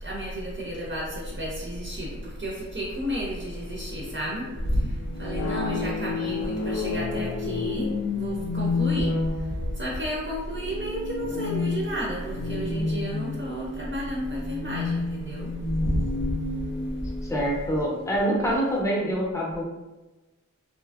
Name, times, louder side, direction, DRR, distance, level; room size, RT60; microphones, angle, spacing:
voice 1, 0.0-4.8 5.2-7.9 8.1-9.1 9.8-15.5 15.8-15.9, equal, 40° right, -4 dB, 0.5 m, -31 dB
sound 1, 3.5-18.8, left 3 dB, 60° left, 0.4 m, -31 dB
voice 2, 17.2-19.6, equal, 10° left, -3 dB, 0.6 m, -26 dB
2.6 x 2.5 x 2.3 m, 1.1 s
wide cardioid pair, 120°, 29 cm